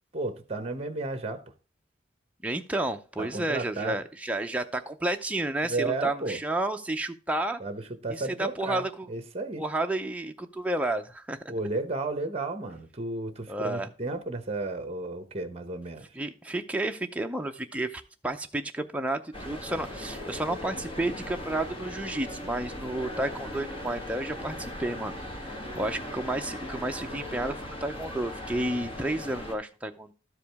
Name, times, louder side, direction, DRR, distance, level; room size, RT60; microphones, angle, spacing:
voice 1, 0.1-1.4 3.2-4.0 5.6-6.4 7.6-9.6 11.5-16.1, right 2 dB, 30° right, 1.0 m, -33 dB
voice 2, 2.4-7.6 8.1-9.1 9.6-11.4 13.5-13.9 16.1-25.2 25.8-30.1, right 1 dB, 5° right, 0.6 m, -31 dB
sound 1, 19.3-29.5, left 1 dB, 30° left, 1.6 m, -38 dB
12.5 x 4.9 x 3.5 m
head